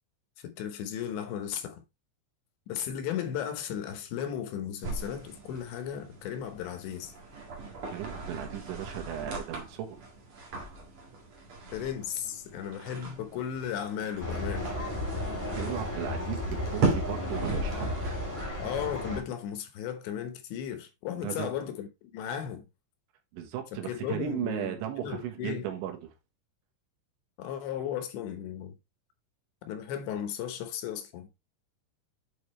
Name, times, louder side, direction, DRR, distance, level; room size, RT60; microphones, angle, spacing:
voice 1, 0.4-1.8 2.7-7.1 11.7-14.7 18.6-22.6 23.7-24.7 25.0-25.7 27.4-28.7 29.6-31.3, left 9 dB, 75° left, 3.2 m, -35 dB
sound 1, 4.8-18.5, right 3 dB, 50° right, 1.7 m, -37 dB
voice 2, 7.7-10.0 15.5-18.0 21.2-21.5 23.3-26.1, right 11 dB, 80° right, 3.5 m, -36 dB
sound 2, 14.2-19.2, left 1 dB, 5° left, 1.7 m, -34 dB
8.7 x 5.0 x 3.2 m
omnidirectional pair, 5.4 m